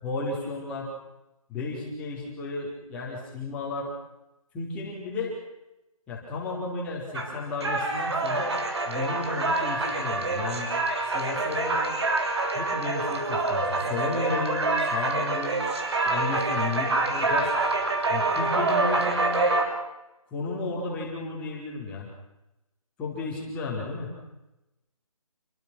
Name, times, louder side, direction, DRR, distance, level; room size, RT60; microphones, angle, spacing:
voice 1, 0.0-0.9 1.5-3.9 4.5-5.3 6.1-8.5 8.9-10.7 11.0-11.8 12.5-15.7 16.0-17.5 18.1-19.5 20.3-22.1 23.0-24.1, left 3 dB, 5° left, -3 dB, 4.3 m, -33 dB
sound 1, 7.1-19.7, right 3 dB, 45° right, 5.3 m, -26 dB
29.0 x 23.5 x 6.2 m, 0.94 s
hypercardioid pair, 175°, 19 cm